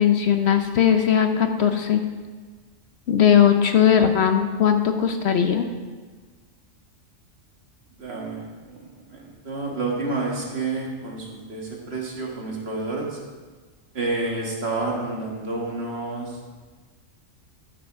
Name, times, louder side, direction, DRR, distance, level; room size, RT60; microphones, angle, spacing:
voice 1, 0.0-2.0 3.1-5.6, left 8 dB, 60° left, 6 dB, 0.9 m, -19 dB
voice 2, 8.0-13.2 13.9-16.4, right 3 dB, 55° right, -2 dB, 1.9 m, -29 dB
12.5 x 5.9 x 5.1 m, 1.4 s
omnidirectional pair, 1.3 m